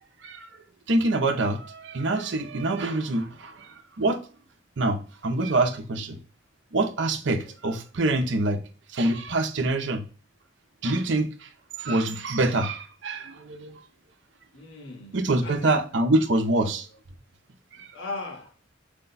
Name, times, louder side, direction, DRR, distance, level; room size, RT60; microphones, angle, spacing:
voice 1, 0.9-4.2 4.8-6.2 6.7-8.6 8.9-10.0 10.8-11.5 11.8-13.8 15.1-16.9 17.7-17.9, right 2 dB, 70° right, 0.7 m, -25 dB
voice 2, 7.4-7.8 14.5-15.9 17.7-18.5, left 3 dB, 65° left, 1.3 m, -39 dB
5.0 x 2.2 x 3.9 m
head